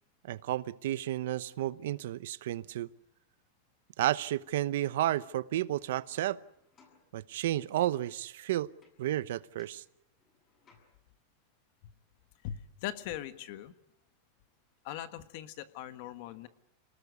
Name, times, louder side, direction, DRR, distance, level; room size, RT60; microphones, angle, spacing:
voice 1, 0.3-2.9 4.0-6.4 7.1-8.7 9.0-9.8, right 13 dB, 70° right, 17 dB, 0.8 m, -32 dB
sound 1, 6.0-7.6 8.8-9.3 9.6-11.2 14.5-14.6 14.9-15.9, left 4 dB, 20° left, 7.3 m, -68 dB
voice 2, 12.4-13.7 14.8-16.5, left 12 dB, 45° left, 11 dB, 1.5 m, -40 dB
28.0 x 19.0 x 8.3 m, 0.82 s
supercardioid pair, 170°, 0 cm